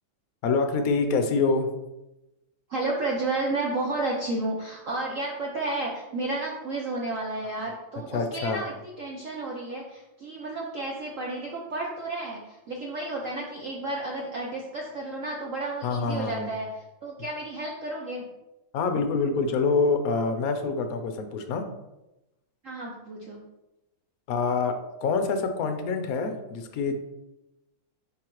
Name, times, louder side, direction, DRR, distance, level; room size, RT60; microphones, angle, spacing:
voice 1, 0.4-1.7 7.6-7.7 8.1-8.6 15.8-16.5 18.7-21.6 24.3-24.8 25.0-27.0, left 4 dB, 65° left, 7 dB, 0.9 m, -26 dB
voice 2, 2.7-16.7 17.0-18.3 22.6-23.4, right 2 dB, 55° right, -2 dB, 0.9 m, -32 dB
9.8 x 3.6 x 3.1 m, 0.97 s
omnidirectional pair, 2.2 m